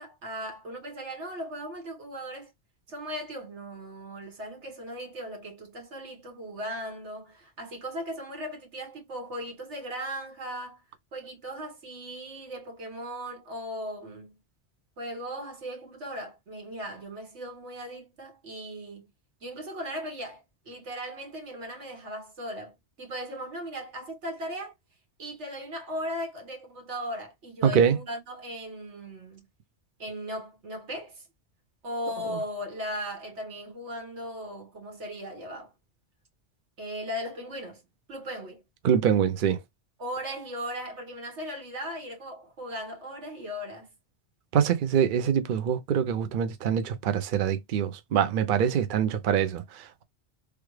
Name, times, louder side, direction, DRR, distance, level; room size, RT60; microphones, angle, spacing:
voice 1, 0.0-2.5 2.9-10.8 11.1-14.4 15.0-19.1 19.4-24.7 25.2-29.5 30.0-31.3 31.8-35.7 36.8-37.8 38.1-38.6 40.0-43.9, equal, 80° right, 1.7 m, -38 dB
voice 2, 27.6-28.0 38.8-39.6 44.5-50.0, right 8 dB, 60° right, 0.6 m, -24 dB
3.4 x 2.3 x 3.1 m
omnidirectional pair, 1.2 m